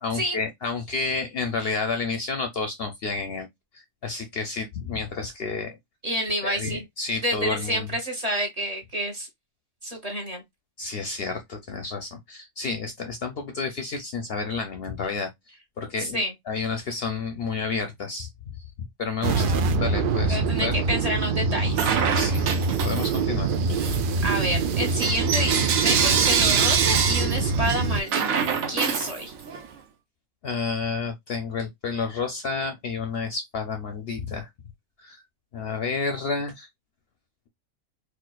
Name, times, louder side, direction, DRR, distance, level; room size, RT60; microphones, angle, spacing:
voice 1, 0.0-3.5 3.7-5.8 6.4-7.9 10.8-15.3 15.8-18.3 19.0-20.7 22.1-22.5 22.8-23.5 30.4-34.5 35.0-35.2 35.5-36.7, left 4 dB, 60° left, 0.7 m, -30 dB
voice 2, 6.0-6.8 7.2-9.3 9.8-10.4 16.0-16.3 20.3-21.9 24.2-29.3, equal, 35° right, 0.9 m, -29 dB
sound 1, 19.2-28.0, right 4 dB, 65° right, 0.5 m, -25 dB
Bell / Coin (dropping), 21.7-23.3 23.7-29.7, right 6 dB, 90° right, 1.2 m, -25 dB
4.2 x 2.4 x 2.2 m
omnidirectional pair, 1.4 m